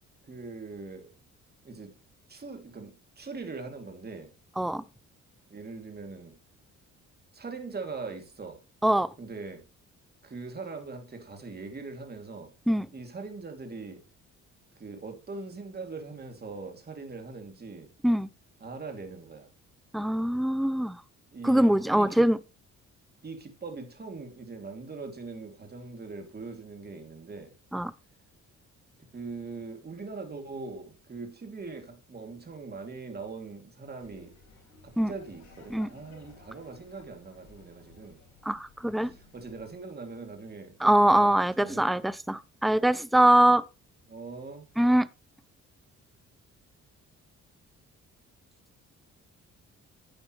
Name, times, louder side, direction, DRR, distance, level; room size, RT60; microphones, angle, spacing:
voice 1, 0.3-1.1 1.6-1.9 2.3-4.3 5.5-6.3 7.3-8.6 9.2-9.6 10.2-12.5 12.9-14.0 14.8-17.9 18.6-19.5 21.3-22.3 23.2-27.5 29.1-34.3 34.8-38.2 39.0-42.1 42.8-42.9 44.1-44.7, right 4 dB, 30° right, 2.9 m, -41 dB
voice 2, 19.9-21.0 21.4-22.4 27.7-27.9 35.0-35.1 35.7-35.9 38.5-39.1 40.8-43.6 44.8-45.1, right 1 dB, ahead, 0.4 m, -23 dB
Laughter, 34.0-39.8, left 3 dB, 65° left, 5.3 m, -56 dB
11.0 x 8.7 x 3.3 m
cardioid pair, 90°, 30 cm